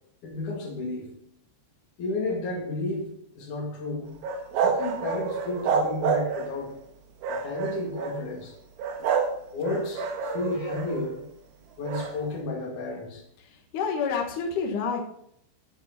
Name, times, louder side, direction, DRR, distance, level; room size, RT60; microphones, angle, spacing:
voice 1, 0.2-1.1 2.0-4.1 4.6-6.8 7.3-8.5 9.5-11.2 11.8-13.2, left 2 dB, 45° left, 0 dB, 3.1 m, -32 dB
sound 1, 4.2-6.6 7.2-8.2 8.8-9.4 9.6-11.1 11.8-12.1, right 6 dB, 65° right, 3.0 m, -28 dB
voice 2, 13.7-15.0, left 5 dB, 75° left, 2 dB, 1.8 m, -28 dB
10.5 x 9.0 x 5.7 m, 0.70 s
omnidirectional pair, 5.8 m